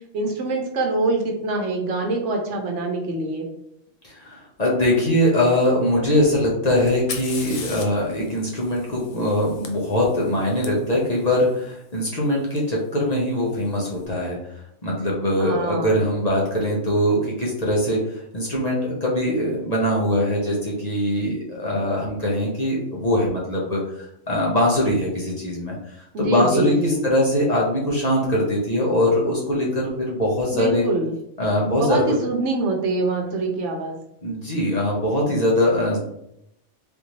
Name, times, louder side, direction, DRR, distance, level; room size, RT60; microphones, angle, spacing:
voice 1, 0.1-3.5 15.4-16.0 26.1-27.0 30.5-31.1 31.7-34.0, right 2 dB, 80° right, 2 dB, 1.0 m, -24 dB
voice 2, 4.0-14.4 14.8-30.9 31.4-32.0 34.2-36.0, left 1 dB, 40° left, -4 dB, 0.8 m, -22 dB
Fire, 6.9-10.7 12.6-12.7 13.5-13.9, left 4 dB, 65° left, 0.3 m, -38 dB
3.5 x 2.6 x 3.0 m, 0.76 s
omnidirectional pair, 1.2 m